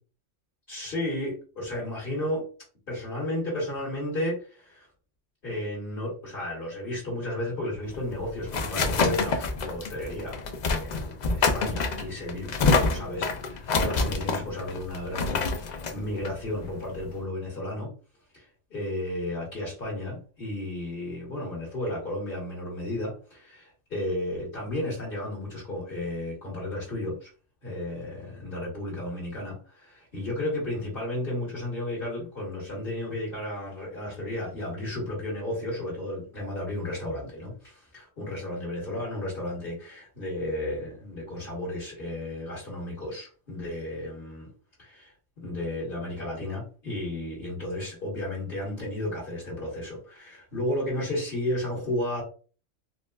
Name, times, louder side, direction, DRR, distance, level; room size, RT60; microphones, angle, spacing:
voice 1, 0.7-2.4 2.9-4.9 5.4-17.9 18.3-27.3 27.6-44.5 44.8-52.2, left 1 dB, 50° left, -4 dB, 1.4 m, -33 dB
sound 1, 7.9-17.2, left 4 dB, 65° left, 0.4 m, -27 dB
4.0 x 2.2 x 2.3 m, 0.37 s
omnidirectional pair, 1.3 m